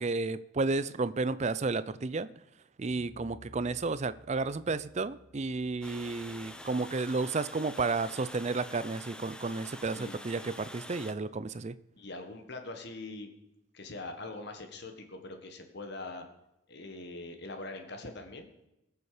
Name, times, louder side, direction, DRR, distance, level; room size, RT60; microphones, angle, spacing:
voice 1, 0.0-2.3 2.8-11.8, right 3 dB, 30° right, 15 dB, 0.4 m, -32 dB
sound 1, 2.9-8.2, equal, 15° right, 5.5 m, -58 dB
Water, 5.8-11.1, left 1 dB, 5° left, 0.7 m, -46 dB
voice 2, 12.0-13.3 13.7-16.3 16.7-18.5, left 2 dB, 50° left, 5 dB, 1.3 m, -43 dB
21.0 x 7.1 x 5.0 m, 0.89 s
head